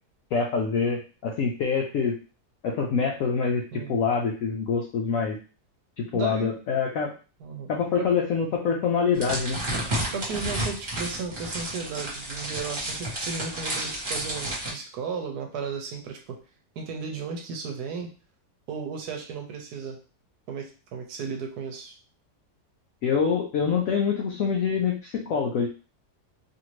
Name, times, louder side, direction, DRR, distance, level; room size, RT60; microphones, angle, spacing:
voice 1, 0.3-2.1 2.6-5.4 6.0-7.1 7.7-9.6 23.0-25.7, left 6 dB, 70° left, 0 dB, 0.8 m, -25 dB
voice 2, 6.1-6.5 7.4-8.1 10.1-16.4 16.8-18.1 18.7-20.0 20.5-21.9, right 5 dB, 75° right, 2 dB, 1.1 m, -35 dB
sound 1, 9.1-14.7, right 1 dB, 35° right, 1.2 m, -31 dB
2.8 x 2.6 x 3.0 m, 0.35 s
omnidirectional pair, 1.8 m